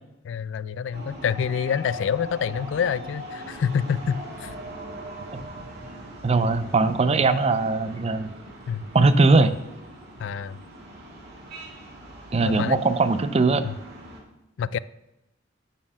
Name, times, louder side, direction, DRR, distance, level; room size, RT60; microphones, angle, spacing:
voice 1, 0.2-4.5 8.7-8.9 10.2-10.6 12.4-12.8 13.6-13.7 14.6-14.8, left 7 dB, 70° left, 0.3 m, -27 dB
sound 1, 0.9-14.2, right 1 dB, 60° right, 2.1 m, -41 dB
voice 2, 6.2-8.3 8.9-9.6 12.3-13.6, right 3 dB, 35° right, 0.5 m, -20 dB
9.1 x 4.4 x 6.1 m
head